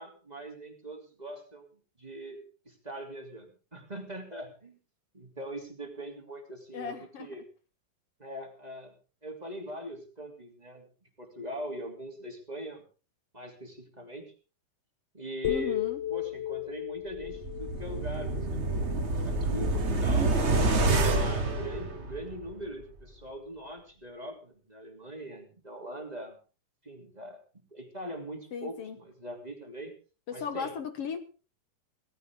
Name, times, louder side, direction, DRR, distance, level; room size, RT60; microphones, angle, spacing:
voice 1, 0.0-1.7 2.0-4.8 5.1-7.4 8.2-8.9 9.2-10.9 11.2-12.8 13.3-14.3 15.1-15.8 16.1-18.9 19.2-20.4 21.0-26.4 26.8-27.4 27.7-29.9 30.3-30.7, right 1 dB, 15° right, 2 dB, 2.8 m, -41 dB
voice 2, 6.7-7.3 15.4-16.0 28.5-29.0 30.3-31.2, left 6 dB, 55° left, 9 dB, 2.0 m, -36 dB
sound 1, 15.4-19.5, left 14 dB, 85° left, 1.0 m, -35 dB
sound 2, 17.2-22.5 22.8-22.9, right 2 dB, 45° right, 0.8 m, -27 dB
18.0 x 15.0 x 3.7 m, 0.36 s
omnidirectional pair, 3.8 m